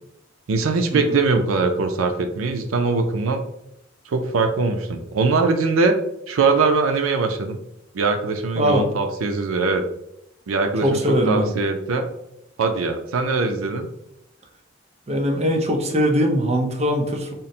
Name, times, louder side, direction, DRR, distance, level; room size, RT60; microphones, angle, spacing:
voice 1, 0.5-3.4 4.1-6.0 6.3-7.6 7.9-9.8 10.5-12.1 12.6-13.9, right 4 dB, 85° right, 7 dB, 0.4 m, -21 dB
voice 2, 10.8-11.5 15.1-17.3, equal, 35° right, 2 dB, 0.6 m, -21 dB
3.8 x 2.0 x 4.1 m, 0.79 s
head